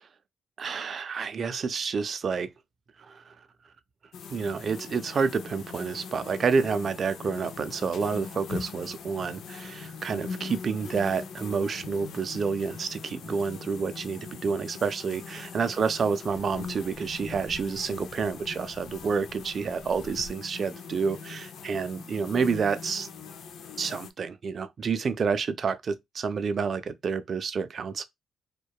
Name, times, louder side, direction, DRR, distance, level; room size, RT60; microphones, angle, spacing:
voice 1, 0.6-2.5 3.0-3.3 4.3-23.1 23.8-28.0, right 5 dB, 45° right, 0.3 m, -29 dB
sound 1, 4.1-24.1, left 6 dB, 70° left, 0.3 m, -41 dB
2.7 x 2.1 x 2.2 m
cardioid pair, 90°, 0 cm